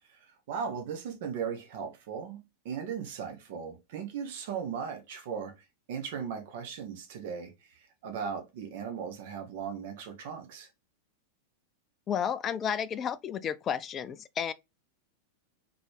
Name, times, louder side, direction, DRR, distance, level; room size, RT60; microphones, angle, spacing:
voice 1, 0.5-10.7, right 7 dB, 50° right, 1.1 m, -37 dB
voice 2, 12.1-14.5, left 8 dB, 25° left, 0.4 m, -32 dB
4.0 x 3.5 x 3.3 m
figure-of-eight pair, 90°, 0 cm